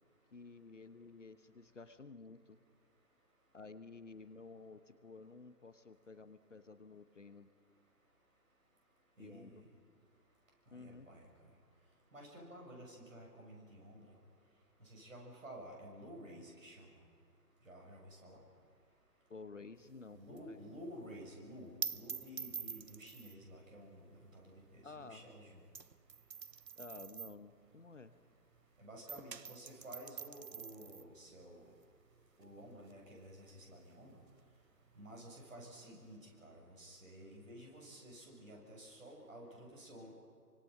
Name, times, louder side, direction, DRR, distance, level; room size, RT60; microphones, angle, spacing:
voice 1, 0.3-2.6 3.5-7.5 9.2-9.6 10.7-11.1 19.3-20.6 24.8-25.3 26.8-28.2, left 4 dB, 50° left, 12 dB, 1.0 m, -53 dB
voice 2, 9.2-9.6 10.8-11.3 12.1-14.0 14.8-16.9 17.6-18.4 20.1-25.6 28.8-31.7 32.4-34.1 35.0-40.1, equal, 50° right, -1 dB, 7.2 m, -52 dB
sound 1, 19.8-28.7 28.9-36.2, right 6 dB, 85° right, 0.8 m, -48 dB
26.5 x 25.0 x 5.7 m, 2.3 s
figure-of-eight pair, 150°, 49 cm